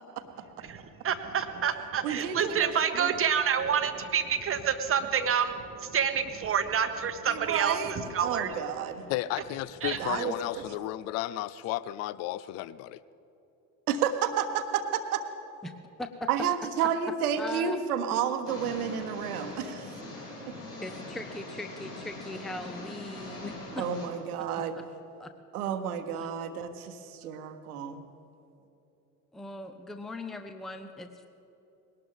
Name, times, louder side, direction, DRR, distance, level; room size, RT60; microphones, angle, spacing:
voice 1, 0.6-8.5 9.8-10.0, right 7 dB, 30° right, 1.0 m, -28 dB
voice 2, 2.0-3.1 7.3-9.0 10.0-10.6 13.9-15.2 16.3-20.0 23.8-24.8 25.5-28.0, right 8 dB, 65° right, 1.2 m, -31 dB
voice 3, 9.1-13.0, left 15 dB, 35° left, 0.4 m, -33 dB
voice 4, 17.4-17.8 18.1-18.2 20.8-23.9 25.2-25.3 26.2-26.3 29.3-31.3, left 2 dB, ahead, 0.7 m, -39 dB
sound 1, 18.4-24.1, left 2 dB, 80° left, 3.5 m, -42 dB
20.5 x 18.0 x 3.6 m
figure-of-eight pair, 65°, 47 cm